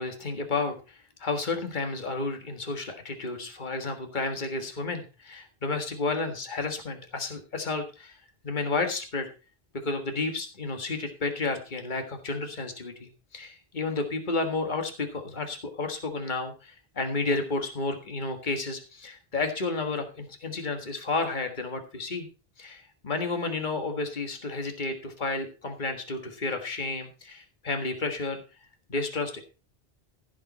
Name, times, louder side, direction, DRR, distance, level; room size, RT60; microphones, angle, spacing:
voice 1, 0.0-8.2 8.4-9.3 9.8-22.3 22.6-28.4 28.9-29.4, left 3 dB, 50° left, 5 dB, 1.8 m, -31 dB
15.5 x 7.3 x 4.2 m, 0.33 s
omnidirectional pair, 1.0 m